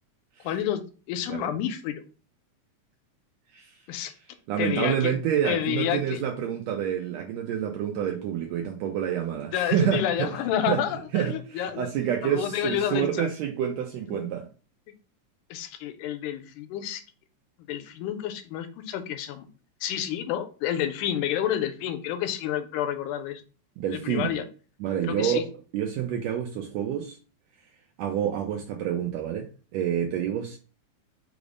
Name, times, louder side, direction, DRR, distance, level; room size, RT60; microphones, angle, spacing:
voice 1, 0.4-0.8 1.1-2.0 3.9-4.1 4.6-5.1 5.5-6.2 9.4-13.3 14.1-14.2 15.5-17.0 17.7-19.5 19.8-23.4 23.9-24.4 25.0-25.4, left 10 dB, 80° left, 9 dB, 2.0 m, -29 dB
voice 2, 4.5-10.3 10.7-10.8 11.1-14.5 23.8-24.3 24.8-27.2 28.0-30.6, right 9 dB, 80° right, 3 dB, 1.5 m, -28 dB
5.1 x 2.0 x 4.8 m, 0.36 s
omnidirectional pair, 3.6 m